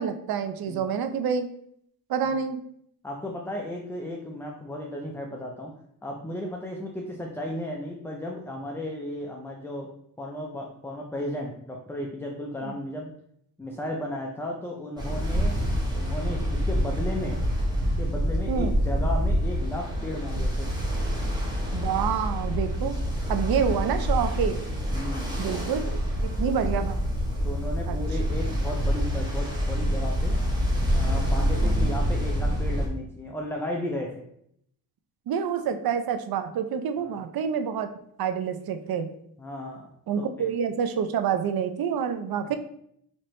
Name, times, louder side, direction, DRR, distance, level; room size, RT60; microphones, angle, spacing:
voice 1, 0.0-1.5 2.1-2.6 12.6-12.8 18.5-18.7 21.7-23.0 23.3-24.6 25.4-27.0 27.9-28.0 31.6-31.9 35.3-37.9 38.2-39.1 40.1-42.6, right 7 dB, 60° right, 8 dB, 0.5 m, -28 dB
voice 2, 3.0-5.7 6.0-9.9 10.2-13.1 13.6-15.6 15.9-17.4 18.0-20.7 22.8-23.0 24.9-25.4 27.4-30.4 30.9-34.3 37.0-37.2 39.4-39.9 40.2-40.5 42.4-42.6, left 1 dB, 5° left, -1 dB, 0.3 m, -34 dB
Ocean, 15.0-32.9, equal, 10° right, 1.0 m, -26 dB
4.4 x 2.9 x 3.1 m, 0.70 s
cardioid pair, 125°, 41 cm